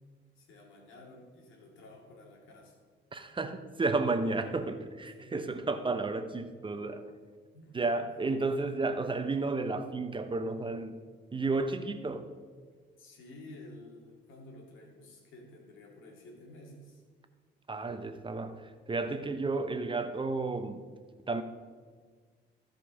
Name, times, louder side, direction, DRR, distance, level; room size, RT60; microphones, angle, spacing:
voice 1, 0.4-2.8 5.0-5.5 7.5-8.0 13.0-17.0, left 1 dB, 80° left, 0 dB, 2.5 m, -52 dB
voice 2, 3.1-7.1 7.7-10.9 11.3-12.3 17.7-20.8 21.3-21.4, right 3 dB, 25° right, 9 dB, 0.8 m, -32 dB
15.0 x 5.3 x 5.0 m, 1.5 s
cardioid pair, 90°, 20 cm